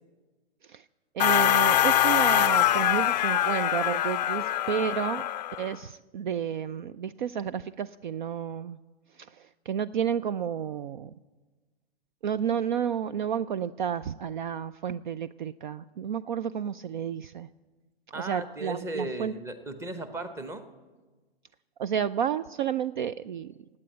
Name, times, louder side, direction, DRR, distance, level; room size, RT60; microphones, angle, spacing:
voice 1, 1.1-5.2 5.6-8.8 9.3-11.1 12.2-17.5 18.2-19.3 21.8-23.5, right 8 dB, 50° right, 16 dB, 0.4 m, -31 dB
sound 1, 1.2-5.7, left 12 dB, 45° left, 0.4 m, -24 dB
voice 2, 18.1-20.7, right 2 dB, 10° right, 10 dB, 0.9 m, -36 dB
17.0 x 8.8 x 9.3 m, 1.3 s
figure-of-eight pair, 125°, 32 cm